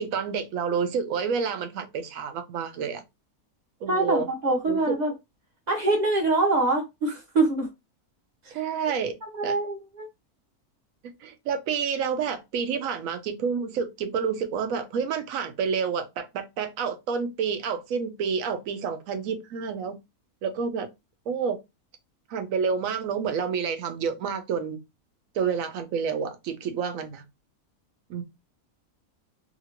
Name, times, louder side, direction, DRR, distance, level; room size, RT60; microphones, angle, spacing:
voice 1, 0.0-3.0 3.8-4.3 4.7-5.0 8.5-9.2 9.4-9.6 11.2-20.0 20.4-20.9 21.3-21.6 22.3-24.8 25.3-27.2 28.1-28.2, right 6 dB, 70° right, 0.9 m, -29 dB
voice 2, 3.9-5.1 5.7-7.7 8.5-8.6 9.3-10.1, right 2 dB, 35° right, 0.8 m, -24 dB
2.8 x 2.7 x 2.8 m
omnidirectional pair, 1.6 m